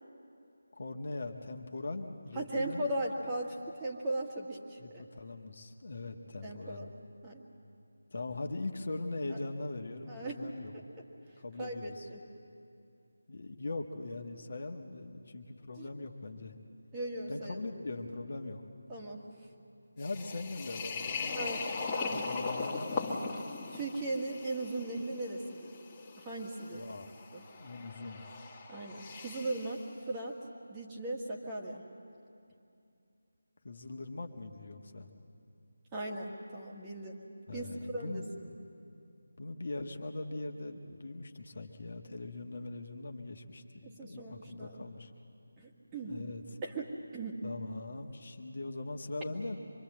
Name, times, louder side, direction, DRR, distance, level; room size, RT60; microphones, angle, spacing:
voice 1, 0.8-2.9 4.8-6.9 8.1-10.7 11.4-12.1 13.3-16.6 17.3-18.6 20.0-23.1 26.7-27.1 27.6-28.2 33.6-35.1 37.5-38.3 39.4-45.1 46.0-46.4 47.4-49.6, left 2 dB, 50° left, 4 dB, 1.5 m, -41 dB
voice 2, 2.3-5.0 6.4-6.9 7.2-7.5 9.3-9.4 10.1-10.4 10.7-11.0 11.6-12.2 15.8-15.9 16.9-17.7 18.9-19.2 21.4-21.6 21.9-22.3 23.7-25.7 26.2-26.8 27.3-27.4 28.7-30.4 30.7-31.8 35.9-37.2 37.5-38.2 43.8-44.8 45.6-46.2 46.6-47.4 49.3-49.4, right 2 dB, 15° right, -2 dB, 1.8 m, -38 dB
sound 1, 20.0-29.8, left 4 dB, 15° left, 1.9 m, -39 dB
25.5 x 22.5 x 7.7 m, 2.5 s
figure-of-eight pair, 160°, 0 cm